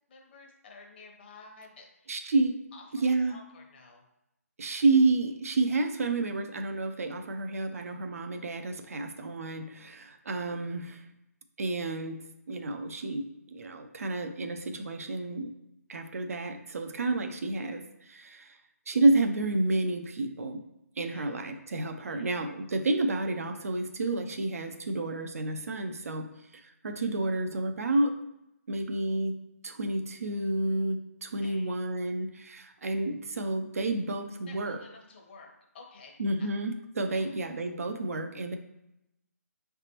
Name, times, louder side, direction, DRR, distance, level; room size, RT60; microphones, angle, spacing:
voice 1, 0.1-2.1 2.7-4.0 21.1-21.3 22.1-22.3 31.4-31.8 34.5-36.5 37.1-37.3, left 4 dB, 40° left, 0 dB, 1.1 m, -52 dB
voice 2, 2.1-2.5 3.0-3.4 4.6-11.0 11.6-12.2 12.5-13.3 13.5-15.5 15.9-18.6 18.9-20.6 21.0-26.2 26.5-28.1 28.7-29.3 29.6-34.8 36.2-38.6, right 2 dB, 65° right, 6 dB, 0.6 m, -30 dB
4.9 x 3.4 x 2.9 m, 0.87 s
figure-of-eight pair, 150°, 9 cm